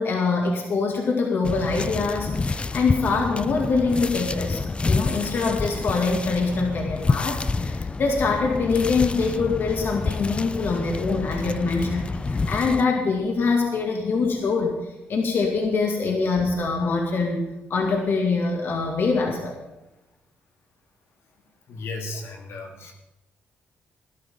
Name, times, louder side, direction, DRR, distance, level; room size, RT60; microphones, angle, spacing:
voice 1, 0.0-14.8 15.1-19.6, left 4 dB, 60° left, 1 dB, 2.3 m, -24 dB
sound 1, 1.4-12.8, left 3 dB, 25° left, 0.5 m, -28 dB
voice 2, 21.7-22.9, left 2 dB, 75° left, 2 dB, 2.6 m, -35 dB
18.5 x 12.0 x 3.8 m, 0.93 s
cardioid pair, 90°, 4 cm